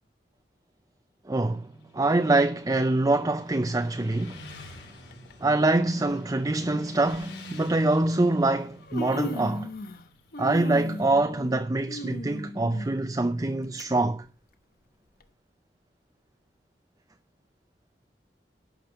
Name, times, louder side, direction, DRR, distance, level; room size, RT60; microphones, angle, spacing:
voice 1, 1.3-1.7 1.9-4.4 5.4-9.7 10.4-14.3, right 2 dB, 20° right, 0.5 m, -25 dB
Motorcycle, 1.5-11.3, left 1 dB, 75° left, 4.6 m, -48 dB
Human voice, 5.1-5.3 6.4-6.5 7.1-7.3 8.3-8.4 8.7-10.1 10.3-13.8 14.3-14.4 15.2-15.3, equal, 55° left, 1.0 m, -37 dB
12.5 x 5.3 x 7.7 m
head